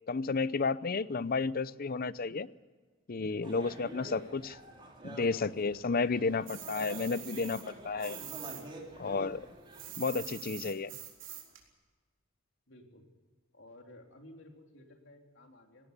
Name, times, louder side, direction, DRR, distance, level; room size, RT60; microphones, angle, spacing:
voice 1, 0.1-2.5 3.1-4.5 5.0-8.2 9.0-9.5 10.0-10.9, left 4 dB, 45° left, 17 dB, 0.6 m, -32 dB
sound 1, 3.4-9.9, right 1 dB, 25° right, 3.7 m, -48 dB
sound 2, 6.5-8.6 8.9-11.6, right 12 dB, 65° right, 4.1 m, -45 dB
voice 2, 12.7-13.1 13.5-15.9, left 1 dB, 65° left, 3 dB, 3.5 m, -55 dB
19.0 x 17.0 x 8.3 m, 1.4 s
head